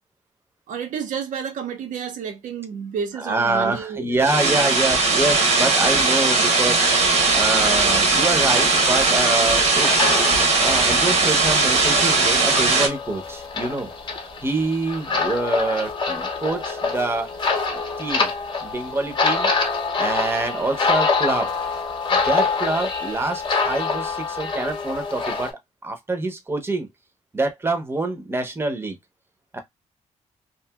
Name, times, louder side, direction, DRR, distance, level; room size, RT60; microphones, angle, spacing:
voice 1, 0.7-4.6, right 7 dB, 85° right, 0.6 m, -30 dB
voice 2, 3.2-7.0 7.3-9.9 10.6-13.9 14.4-17.3 18.0-18.3 18.6-19.5 20.0-21.5 22.1-26.9 27.3-29.0 29.5-29.6, right 2 dB, 20° right, 0.7 m, -26 dB
sound 1, 4.2-12.9, right 3 dB, 60° right, 0.9 m, -19 dB
sound 2, 7.9-25.5, left 4 dB, 35° left, 0.7 m, -26 dB
2.8 x 2.6 x 2.2 m
cardioid pair, 110°, 13 cm